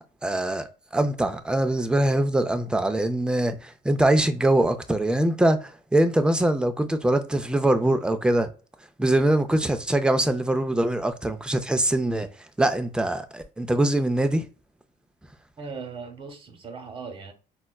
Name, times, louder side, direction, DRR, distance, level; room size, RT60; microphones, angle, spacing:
voice 1, 0.2-0.7 0.9-8.5 9.0-12.3 12.6-14.5, right 1 dB, 5° right, 0.4 m, -23 dB
voice 2, 15.6-17.3, right 5 dB, 30° right, 1.0 m, -38 dB
4.1 x 2.3 x 2.3 m
cardioid pair, 110°, 17 cm